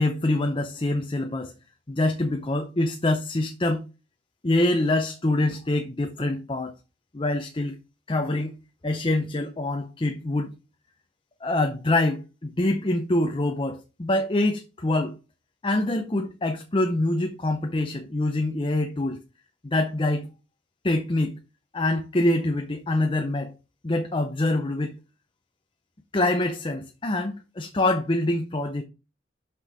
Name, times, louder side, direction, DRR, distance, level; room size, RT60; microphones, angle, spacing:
voice 1, 0.0-1.5 1.9-3.9 4.4-6.7 7.1-7.8 8.1-8.6 8.8-10.5 11.4-15.2 15.6-19.2 19.6-20.3 20.8-21.4 21.7-23.5 23.8-25.0 26.1-28.8, left 2 dB, 25° left, 0.7 m, -25 dB
6.3 x 6.1 x 4.7 m
head